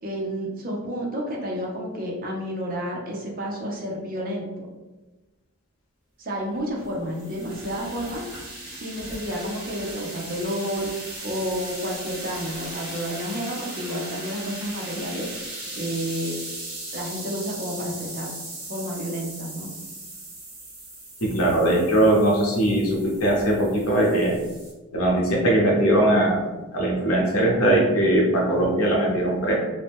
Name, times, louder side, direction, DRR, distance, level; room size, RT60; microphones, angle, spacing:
voice 1, 0.0-4.7 6.2-8.2 8.7-10.9 11.2-15.3 15.7-16.4 16.9-18.3 18.7-19.7, equal, 40° right, -2 dB, 0.6 m, -30 dB
sound 1, 6.5-24.7, right 2 dB, 60° right, 1.1 m, -38 dB
voice 2, 21.2-24.3 24.9-26.4 26.7-29.6, right 1 dB, 80° left, -2 dB, 0.8 m, -20 dB
2.6 x 2.0 x 3.4 m, 1.1 s
head